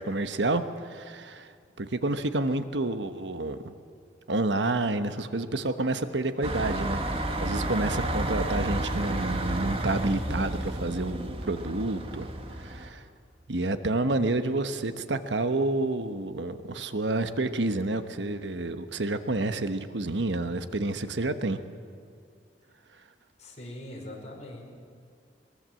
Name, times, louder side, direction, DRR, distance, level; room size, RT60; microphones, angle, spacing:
voice 1, 0.0-1.5 1.8-3.7 4.3-7.0 7.4-13.0 13.5-21.6, right 2 dB, 85° right, 9 dB, 1.1 m, -29 dB
sound 1, 6.4-12.9, right 1 dB, 35° right, 1.7 m, -31 dB
voice 2, 23.4-24.6, left 1 dB, 40° left, -1 dB, 5.1 m, -42 dB
22.0 x 21.0 x 7.6 m, 2.2 s
head